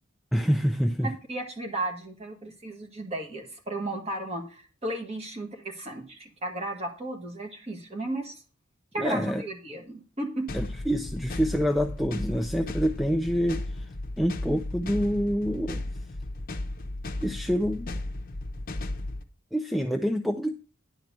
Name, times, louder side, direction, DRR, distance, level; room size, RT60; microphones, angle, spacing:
voice 1, 0.3-1.1 9.0-9.4 10.5-13.9 14.2-15.8 17.2-17.9 19.5-20.6, equal, ahead, 6 dB, 0.4 m, -27 dB
voice 2, 1.0-8.3 8.9-10.5, right 2 dB, 30° right, 2 dB, 1.8 m, -34 dB
sound 1, 10.5-19.2, left 2 dB, 40° left, 0.8 m, -35 dB
10.5 x 4.6 x 6.5 m, 0.37 s
head